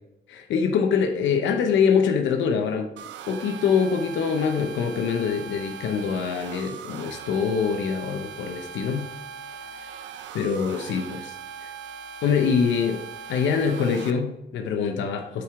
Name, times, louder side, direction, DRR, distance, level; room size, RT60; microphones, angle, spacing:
voice 1, 0.3-2.9 3.3-9.1 10.3-11.7 12.2-13.0 13.3-15.4, left 6 dB, 85° left, 5 dB, 0.8 m, -24 dB
sound 1, 3.0-14.1, right 7 dB, 80° right, 0.6 m, -40 dB
9.3 x 4.6 x 3.6 m, 0.93 s
cardioid pair, 100°, 19 cm